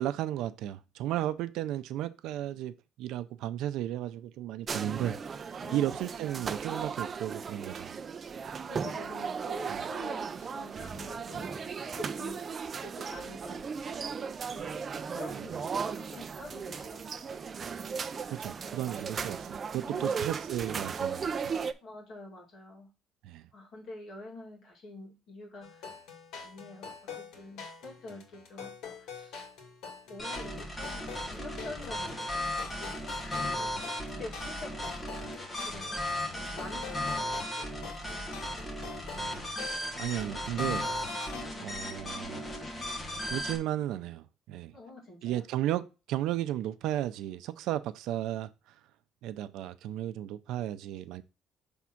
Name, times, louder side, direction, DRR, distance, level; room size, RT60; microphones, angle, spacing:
voice 1, 0.0-5.2 5.7-8.0 9.7-9.9 15.3-15.6 18.3-21.6 23.2-23.5 39.1-40.9 41.6-42.4 43.3-44.7 45.2-48.5 49.2-51.2, right 12 dB, 80° right, 0.5 m, -34 dB
sound 1, 4.7-21.7, right 6 dB, 25° right, 0.4 m, -36 dB
voice 2, 4.8-5.3 5.6-6.1 8.7-17.5 19.8-20.5 21.8-22.9 23.5-25.9 26.4-28.7 29.0-29.4 30.1-35.3 35.7-37.8 41.3-41.8 44.7-45.4, left 2 dB, 50° left, 2.3 m, -47 dB
sound 2, 25.6-41.4, left 5 dB, 85° left, 2.0 m, -46 dB
sound 3, 30.2-43.6, left 1 dB, 15° left, 1.1 m, -36 dB
6.2 x 3.6 x 5.8 m
cardioid pair, 180°, 0 cm